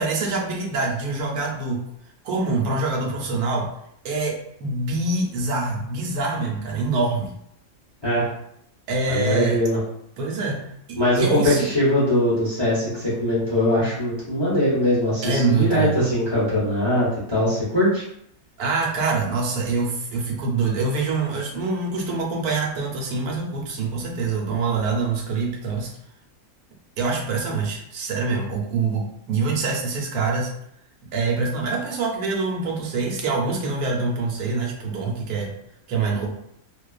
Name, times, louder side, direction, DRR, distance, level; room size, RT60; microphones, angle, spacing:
voice 1, 0.0-1.8 2.2-3.7 4.0-7.3 8.9-9.6 10.2-10.6 10.9-11.7 15.2-16.0 18.6-25.9 27.0-30.5 31.1-35.5 35.9-36.3, right 3 dB, 90° right, -1 dB, 1.1 m, -25 dB
voice 2, 9.1-9.8 11.0-18.0, left 1 dB, 30° left, -9 dB, 0.5 m, -21 dB
2.5 x 2.3 x 2.3 m, 0.73 s
omnidirectional pair, 1.5 m